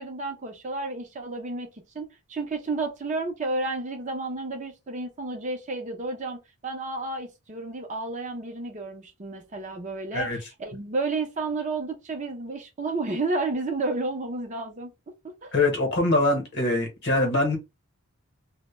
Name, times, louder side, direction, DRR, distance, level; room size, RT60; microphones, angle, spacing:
voice 1, 0.0-1.7 1.9-14.9 15.2-15.5, right 3 dB, 35° right, 0.5 m, -31 dB
voice 2, 15.5-17.6, left 2 dB, 50° left, 0.9 m, -23 dB
2.1 x 2.0 x 3.0 m
head